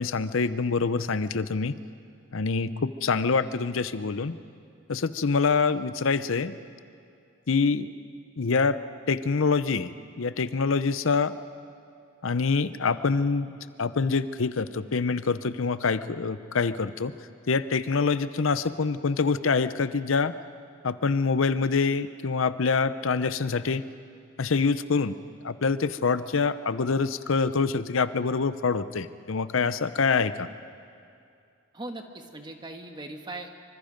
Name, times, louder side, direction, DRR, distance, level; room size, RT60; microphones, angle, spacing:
voice 1, 0.0-1.8 2.3-4.3 4.9-6.6 7.5-7.9 8.4-8.8 9.1-11.3 12.2-13.5 13.8-17.1 17.5-20.3 20.8-23.8 24.4-25.2 25.4-30.5, left 4 dB, 80° left, 13 dB, 0.7 m, -25 dB
voice 2, 31.7-33.5, right 2 dB, 20° right, 4 dB, 1.4 m, -39 dB
26.0 x 24.5 x 5.2 m, 2.4 s
head